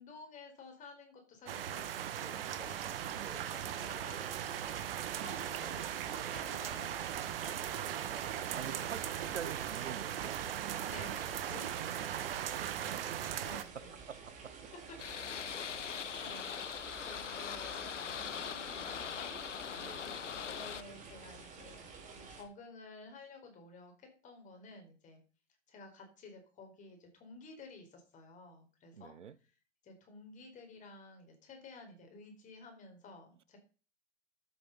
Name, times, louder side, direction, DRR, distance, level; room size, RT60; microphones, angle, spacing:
voice 1, 0.0-2.8 3.3-8.4 8.7-8.9 10.9-13.1 13.4-14.0 15.3-15.4 15.6-16.4 17.0-19.7 20.0-20.1 20.5-21.8 22.1-25.2 25.7-29.1 29.8-33.6, left 3 dB, 20° left, 4.6 m, -53 dB
sound 1, 1.5-13.6, right 10 dB, 50° right, 1.4 m, -38 dB
sound 2, 2.5-22.4, right 4 dB, 20° right, 3.7 m, -51 dB
voice 2, 8.5-10.4 12.5-13.2 13.7-14.6 18.1-18.4 19.8-20.1 28.9-29.4, right 7 dB, 75° right, 1.1 m, -47 dB
sound 3, 15.0-20.8, left 8 dB, 85° left, 0.7 m, -41 dB
12.0 x 8.9 x 5.5 m
figure-of-eight pair, 120°, 36 cm